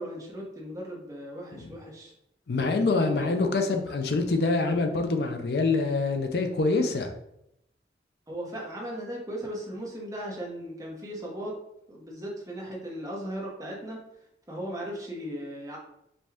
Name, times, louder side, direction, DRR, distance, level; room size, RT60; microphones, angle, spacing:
voice 1, 0.0-2.1 2.6-2.7 8.3-11.5 11.9-14.0 14.5-15.8, equal, 20° right, -3 dB, 0.9 m, -37 dB
voice 2, 2.5-7.1, left 3 dB, 65° left, 5 dB, 0.5 m, -25 dB
5.0 x 2.3 x 3.5 m, 0.80 s
head